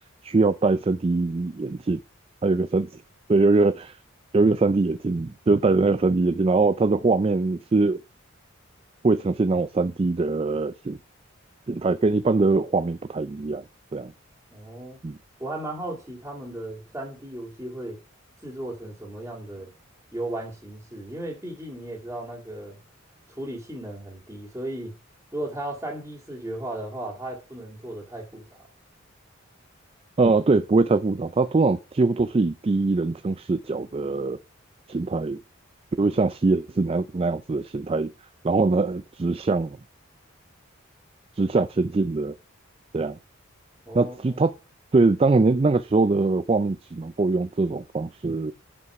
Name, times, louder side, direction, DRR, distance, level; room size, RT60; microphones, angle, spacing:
voice 1, 0.2-2.0 2.4-3.0 3.3-4.0 4.3-8.0 9.0-11.0 11.7-13.6 13.9-14.1 15.0-15.2 30.2-34.4 34.9-35.4 36.0-38.1 38.4-39.8 41.3-42.3 42.9-43.2 43.9-44.5 44.9-48.5, right 3 dB, 25° right, 0.3 m, -22 dB
voice 2, 14.5-15.0 15.4-18.0 18.4-19.7 20.1-22.8 23.3-25.0 25.3-28.4 43.9-44.4, right 1 dB, 10° right, 2.1 m, -35 dB
8.0 x 5.5 x 4.7 m
head